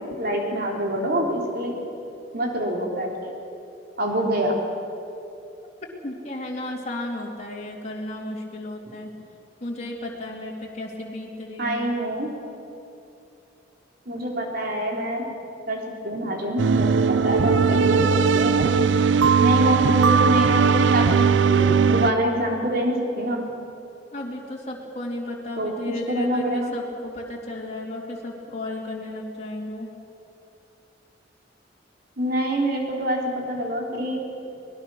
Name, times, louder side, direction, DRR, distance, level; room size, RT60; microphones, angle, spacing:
voice 1, 0.0-1.7 2.3-3.3 4.0-4.6 11.6-12.3 14.1-15.3 15.7-18.7 19.4-21.2 21.5-23.4 25.6-25.7 26.1-26.7 32.2-34.2, equal, 55° right, 0 dB, 3.7 m, -26 dB
voice 2, 6.0-9.1 9.6-11.9 24.1-29.9, left 1 dB, 40° left, -3 dB, 3.0 m, -34 dB
sound 1, 16.6-22.1, right 5 dB, 75° right, 0.5 m, -19 dB
23.5 x 20.5 x 6.3 m, 2.7 s
head